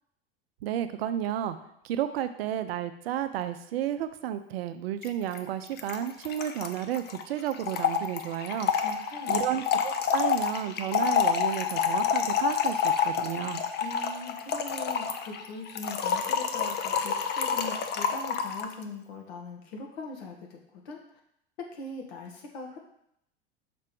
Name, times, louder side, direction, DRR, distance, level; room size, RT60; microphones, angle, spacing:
voice 1, 0.6-1.6 1.8-8.7 9.3-13.6, right 10 dB, 70° right, 10 dB, 0.6 m, -32 dB
Trickle dribble / Fill (with liquid), 5.0-5.1 5.4-5.5 5.6-18.7, left 7 dB, 30° left, 0.6 m, -28 dB
voice 2, 8.8-9.4 13.8-21.0 21.7-22.8, left 3 dB, 70° left, 1 dB, 1.4 m, -41 dB
5.9 x 3.2 x 5.2 m, 0.75 s
hypercardioid pair, 90°, 32 cm